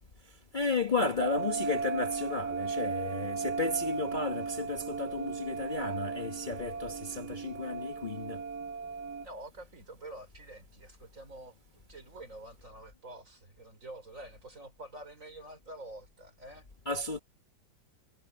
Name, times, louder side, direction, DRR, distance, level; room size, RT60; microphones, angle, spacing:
voice 1, 0.5-8.4 16.9-17.2, left 3 dB, 30° left, 1.2 m, -33 dB
sound 1, 1.2-9.3, right 5 dB, 75° right, 1.6 m, -36 dB
voice 2, 9.2-16.7, right 1 dB, 45° right, 5.5 m, -48 dB
omnidirectional pair, 1.9 m